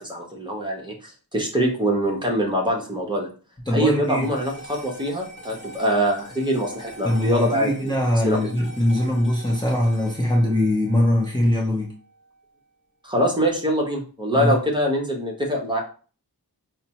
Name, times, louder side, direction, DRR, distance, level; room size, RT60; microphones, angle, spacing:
voice 1, 0.0-3.3 3.7-7.9 8.2-8.4 13.0-15.8, equal, 10° right, -2 dB, 1.0 m, -24 dB
voice 2, 3.7-4.2 7.0-11.9 14.4-14.5, left 1 dB, 10° left, -3 dB, 0.8 m, -21 dB
sound 1, 4.0-12.6, right 1 dB, 30° left, 1.7 m, -43 dB
5.0 x 2.1 x 2.9 m, 0.39 s
wide cardioid pair, 90°, 38 cm